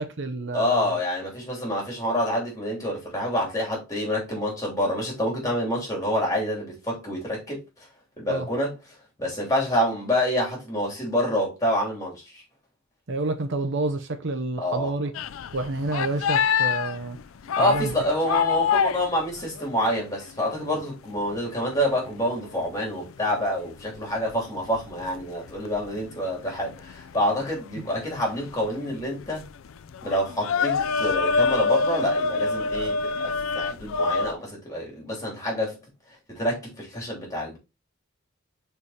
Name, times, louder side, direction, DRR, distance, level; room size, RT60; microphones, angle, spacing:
voice 1, 0.0-1.0 8.3-8.5 13.1-15.1 15.5-17.2 17.6-17.9, right 2 dB, 60° right, 0.9 m, -28 dB
voice 2, 0.5-7.6 8.2-8.7 9.2-12.4 14.6-14.9 17.6-29.4 30.0-35.8 36.3-37.6, left 1 dB, 15° left, 3.2 m, -27 dB
sound 1, 15.1-20.4 20.8-20.9 21.2-34.3, left 5 dB, 70° left, 0.4 m, -27 dB
5.0 x 4.5 x 4.2 m
head